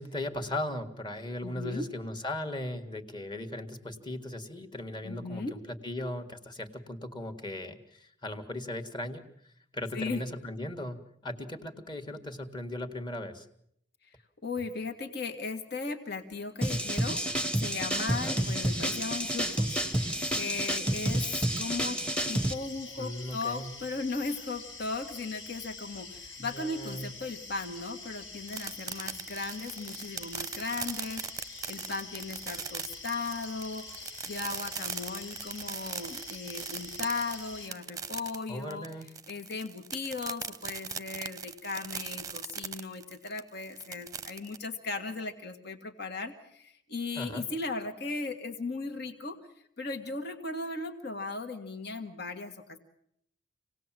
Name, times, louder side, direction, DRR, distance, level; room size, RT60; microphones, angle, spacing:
voice 1, 0.0-9.2 9.7-11.0 11.2-13.5 18.1-18.4 23.0-23.7 26.4-27.1 38.5-39.1 47.2-47.5, left 1 dB, 25° left, 7 dB, 1.8 m, -37 dB
voice 2, 1.4-1.8 5.0-5.5 9.9-10.2 14.4-17.2 17.6-19.8 20.3-21.2 21.6-22.0 22.3-38.9 39.3-49.4 49.8-52.8, left 3 dB, 60° left, 5 dB, 1.8 m, -37 dB
sound 1, 16.6-22.5, right 1 dB, 5° left, 1.1 m, -30 dB
sound 2, 18.0-37.7, left 3 dB, 80° left, 4.0 m, -45 dB
sound 3, 28.5-44.6, right 7 dB, 20° right, 0.8 m, -39 dB
27.0 x 18.5 x 7.6 m, 0.73 s
head